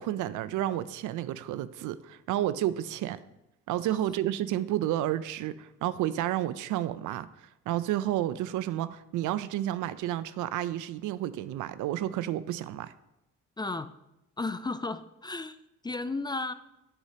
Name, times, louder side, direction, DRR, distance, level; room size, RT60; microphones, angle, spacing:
voice 1, 0.0-3.2 3.7-7.3 7.7-12.9, right 13 dB, 85° right, 15 dB, 0.5 m, -31 dB
voice 2, 13.6-13.9 14.4-15.6 15.8-16.5, left 3 dB, 15° left, 12 dB, 0.4 m, -33 dB
9.7 x 8.1 x 2.8 m, 0.91 s
cardioid pair, 90°, 30 cm